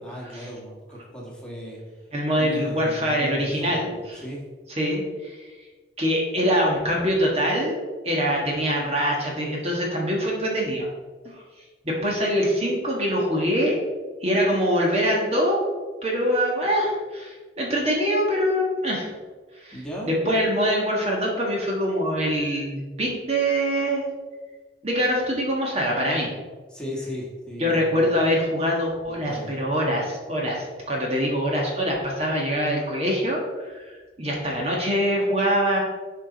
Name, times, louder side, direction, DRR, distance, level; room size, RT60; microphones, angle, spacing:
voice 1, 0.0-1.8 2.4-4.4 19.7-20.1 26.7-28.2 29.1-29.6, equal, 5° left, -4 dB, 1.8 m, -37 dB
voice 2, 2.1-4.2 4.8-5.4 6.0-7.8 8.0-10.9 11.2-11.4 11.8-13.8 14.2-15.6 16.0-19.1 19.6-19.8 20.2-24.0 24.8-26.3 27.6-33.9 34.2-35.8, equal, 35° right, -2 dB, 1.6 m, -24 dB
11.0 x 4.9 x 4.1 m, 1.4 s
head